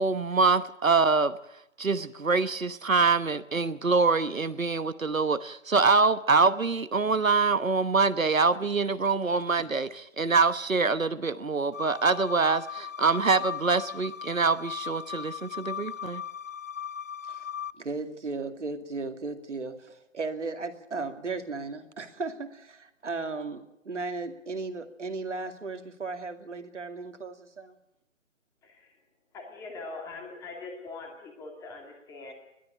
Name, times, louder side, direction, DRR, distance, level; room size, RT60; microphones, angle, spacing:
voice 1, 0.0-1.4 1.8-16.2, right 4 dB, 90° right, 13 dB, 1.1 m, -25 dB
sound 1, 11.7-17.7, left 8 dB, 75° left, 0.7 m, -38 dB
voice 2, 17.8-27.8, right 3 dB, 65° right, 7 dB, 2.4 m, -36 dB
voice 3, 28.6-29.0 29.3-32.3, left 3 dB, 10° left, 3 dB, 2.3 m, -42 dB
21.5 x 12.5 x 9.9 m, 0.87 s
figure-of-eight pair, 150°, 39 cm